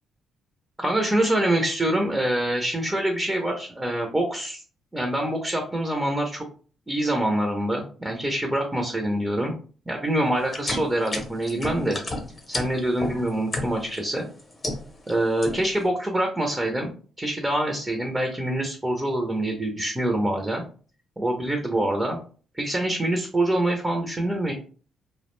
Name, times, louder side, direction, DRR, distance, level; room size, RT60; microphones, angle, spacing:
voice 1, 0.8-4.6 4.9-6.5 6.9-9.5 9.9-12.0 12.5-14.3 15.1-20.6 21.2-22.2 22.5-24.5, right 1 dB, 15° right, 2 dB, 0.5 m, -25 dB
sound 1, 10.4-14.0 14.4-15.1 15.4-15.8, left 2 dB, 30° left, 0.7 m, -31 dB
2.3 x 2.1 x 3.0 m, 0.40 s
cardioid pair, 90°, 0 cm